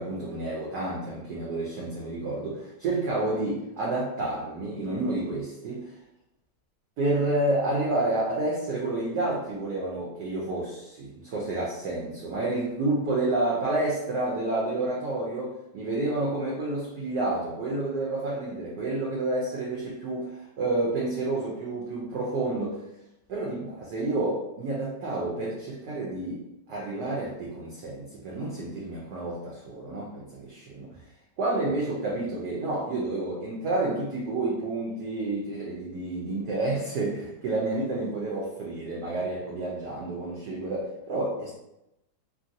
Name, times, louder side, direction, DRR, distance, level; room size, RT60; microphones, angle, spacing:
voice 1, 0.0-5.9 7.0-22.8 23.3-31.0 31.4-41.5, right 2 dB, 70° right, -4 dB, 1.0 m, -30 dB
3.0 x 2.6 x 2.6 m, 0.86 s
omnidirectional pair, 2.1 m